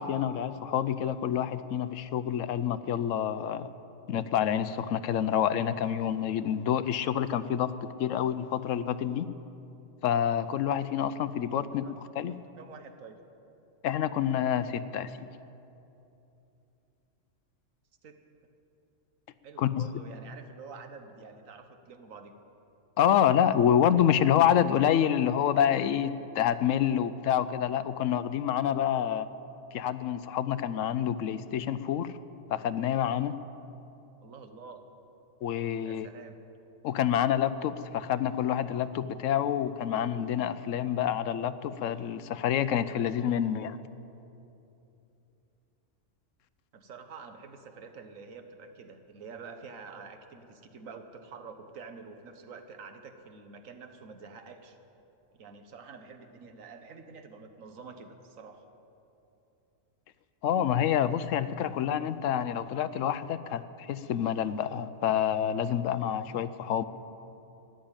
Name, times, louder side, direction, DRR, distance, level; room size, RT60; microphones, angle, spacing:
voice 1, 0.0-3.7 4.1-7.7 8.0-9.3 10.0-11.8 12.2-12.3 13.8-15.3 19.6-19.9 23.0-29.3 29.7-32.1 32.5-33.3 35.4-36.1 36.8-43.8 60.4-66.8, left 9 dB, 80° left, 14 dB, 1.0 m, -27 dB
voice 2, 11.5-11.9 12.3-13.2 18.0-18.3 19.4-22.3 34.2-34.8 35.8-36.4 46.7-54.8 55.3-58.7, right 5 dB, 90° right, 7 dB, 1.5 m, -47 dB
13.0 x 10.5 x 8.8 m, 2.9 s
omnidirectional pair, 1.3 m